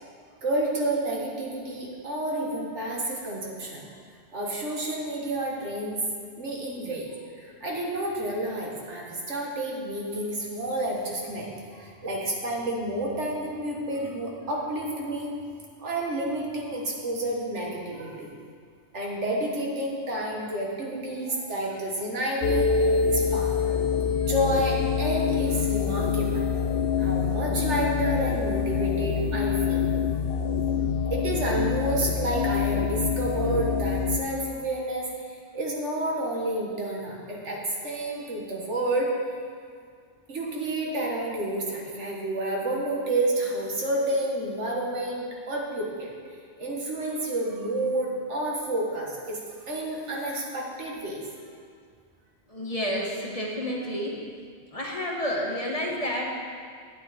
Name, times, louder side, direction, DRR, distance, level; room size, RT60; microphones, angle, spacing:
voice 1, 0.4-3.9 4.3-6.0 6.4-7.1 7.3-15.4 15.8-18.3 18.9-23.7 24.2-26.6 27.0-29.8 31.1-39.1 40.3-46.1 46.6-51.2, right 1 dB, 80° right, -2 dB, 1.9 m, -30 dB
sound 1, 22.4-34.2, left 6 dB, 65° left, 0.9 m, -25 dB
voice 2, 52.5-54.2 54.7-56.3, equal, 30° left, -2 dB, 1.2 m, -30 dB
10.5 x 9.1 x 4.2 m, 2.1 s
omnidirectional pair, 1.2 m